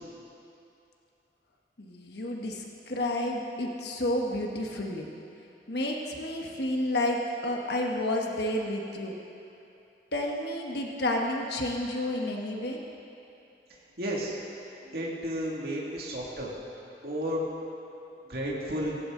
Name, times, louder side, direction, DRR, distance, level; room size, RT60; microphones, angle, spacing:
voice 1, 1.8-5.1 5.7-7.2 7.4-9.1 10.1-12.8 14.9-15.0, left 1 dB, 65° left, 0 dB, 1.3 m, -30 dB
voice 2, 14.0-14.4 14.9-16.5 17.0-17.5 18.3-19.0, equal, 55° right, -4 dB, 2.3 m, -32 dB
17.0 x 15.0 x 3.8 m, 2.8 s
head